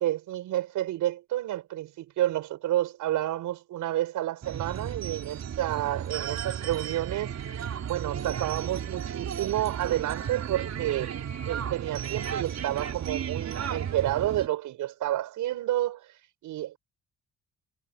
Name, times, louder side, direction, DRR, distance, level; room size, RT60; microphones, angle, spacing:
voice 1, 0.0-7.3 7.8-11.1 11.5-16.0 16.4-16.8, right 14 dB, 85° right, 6.6 m, -30 dB
sound 1, 4.4-14.5, right 8 dB, 60° right, 4.5 m, -34 dB
cardioid pair, 90°, 30 cm